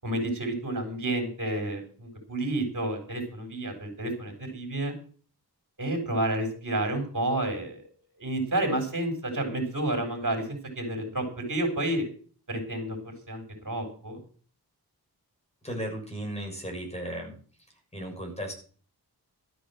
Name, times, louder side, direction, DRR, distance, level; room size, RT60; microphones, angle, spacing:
voice 1, 0.0-4.9 5.8-7.8 8.2-12.0 12.5-14.2, right 1 dB, 50° right, 5 dB, 6.4 m, -30 dB
voice 2, 15.6-17.3 17.9-18.5, right 1 dB, 15° left, 2 dB, 6.6 m, -35 dB
13.5 x 8.4 x 7.8 m, 0.43 s
wide cardioid pair, 100°, 39 cm